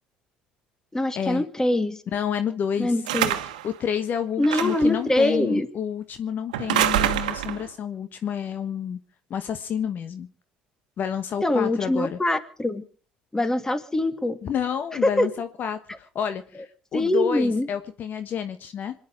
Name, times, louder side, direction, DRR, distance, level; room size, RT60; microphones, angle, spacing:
voice 1, 0.9-2.0 2.8-3.4 4.4-5.7 11.4-12.8 13.3-14.4 15.0-15.3 16.9-17.7, left 1 dB, 15° left, 10 dB, 2.2 m, -23 dB
voice 2, 2.1-2.9 3.6-9.0 9.3-10.3 11.0-12.2 14.4-18.9, left 8 dB, 50° left, 10 dB, 1.3 m, -29 dB
sound 1, 3.1-3.7 4.4-4.9 6.5-7.7, right 12 dB, 80° right, 1.2 m, -25 dB
27.0 x 10.5 x 4.9 m, 0.42 s
hypercardioid pair, 60°, 4 cm